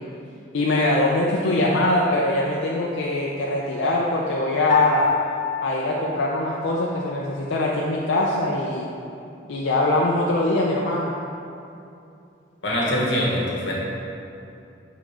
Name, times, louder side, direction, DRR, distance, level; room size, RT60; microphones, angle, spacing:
voice 1, 0.5-5.1 5.6-8.9 9.5-11.1, left 1 dB, 90° left, -3 dB, 0.5 m, -22 dB
Piano, 4.7-7.2, left 5 dB, 40° left, 0.4 m, -27 dB
voice 2, 12.6-13.7, equal, 70° left, -5 dB, 1.4 m, -23 dB
5.1 x 3.8 x 5.5 m, 2.6 s
head